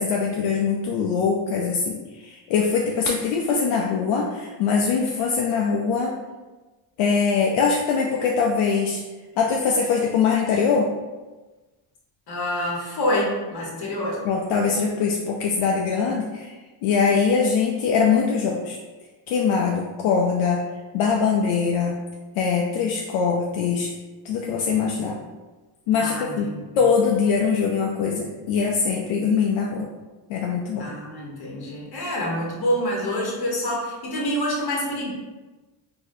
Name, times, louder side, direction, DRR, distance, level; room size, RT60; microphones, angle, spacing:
voice 1, 0.0-6.2 7.0-9.0 9.4-10.9 14.2-16.5 16.8-18.8 19.3-20.6 20.9-22.0 22.4-23.9 24.2-25.2 25.9-29.9 30.3-30.9, left 5 dB, 80° left, -1 dB, 0.6 m, -22 dB
voice 2, 12.3-14.2 25.9-26.7 30.8-35.1, equal, 50° left, -3 dB, 1.3 m, -27 dB
3.9 x 2.9 x 2.6 m, 1.2 s
cardioid pair, 120°, 47 cm